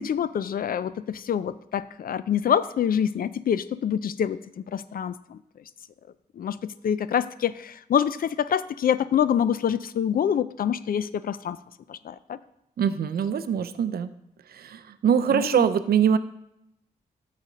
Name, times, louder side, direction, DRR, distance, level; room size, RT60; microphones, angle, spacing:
voice 1, 0.0-4.4 4.7-5.4 6.4-11.6 11.9-12.4 15.3-15.6, left 8 dB, 70° left, 16 dB, 0.4 m, -26 dB
voice 2, 12.8-14.1 14.6-16.2, right 8 dB, 85° right, 12 dB, 0.5 m, -23 dB
12.5 x 4.2 x 5.0 m, 0.83 s
cardioid pair, 85°, 15 cm